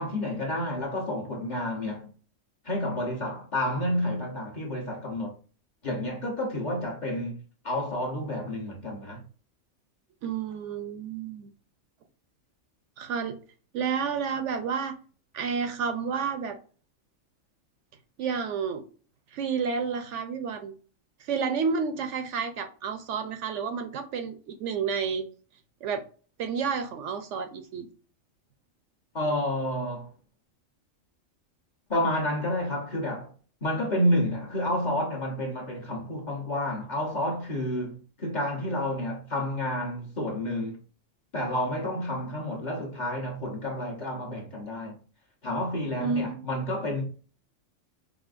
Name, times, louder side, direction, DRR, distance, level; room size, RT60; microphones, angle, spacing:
voice 1, 0.0-2.1 2.6-5.4 5.8-7.4 7.6-9.2 29.1-30.1 31.9-33.3 33.6-40.8 41.3-45.0 45.4-47.0, left 1 dB, 35° left, 1.0 m, -30 dB
voice 2, 10.2-11.5 13.0-13.4 13.7-15.0 15.3-16.6 18.2-18.9 19.3-20.7 21.2-25.2 25.8-26.0 26.4-27.9 46.0-46.5, right 6 dB, 70° right, 0.8 m, -30 dB
5.0 x 2.6 x 2.5 m
omnidirectional pair, 1.4 m